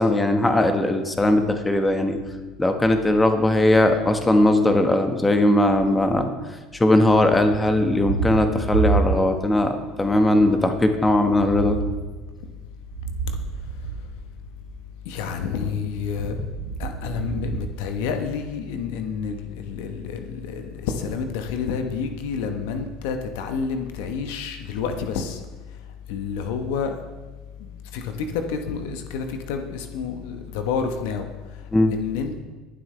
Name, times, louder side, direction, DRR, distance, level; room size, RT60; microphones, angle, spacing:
voice 1, 0.0-2.2 2.6-6.3 6.7-11.8 31.7-31.9, left 1 dB, 15° left, 6 dB, 1.4 m, -19 dB
Thunder, 7.2-9.6 10.0-14.8 15.8-18.5, right 5 dB, 85° right, 1.0 m, -30 dB
voice 2, 15.1-16.4 16.8-25.4 26.1-26.9 27.9-28.0 28.3-31.3 31.9-32.4, left 6 dB, 75° left, 6 dB, 1.1 m, -29 dB
22.5 x 7.8 x 3.3 m, 1.3 s
hypercardioid pair, 75°, 0 cm